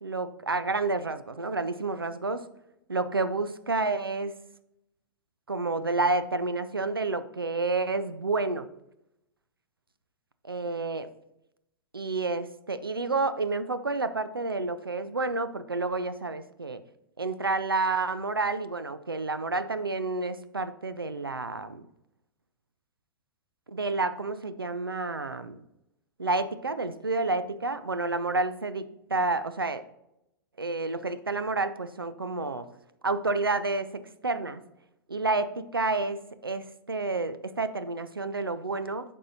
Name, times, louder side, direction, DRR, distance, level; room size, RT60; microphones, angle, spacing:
voice 1, 0.0-2.4 2.9-4.3 5.5-8.7 10.5-11.1 11.9-16.8 17.2-21.8 23.7-25.6 26.2-29.8 30.6-32.7 33.0-34.6 35.1-39.0, right 3 dB, 90° right, 12 dB, 0.5 m, -29 dB
8.5 x 5.4 x 2.6 m, 0.84 s
figure-of-eight pair, 100°, 12 cm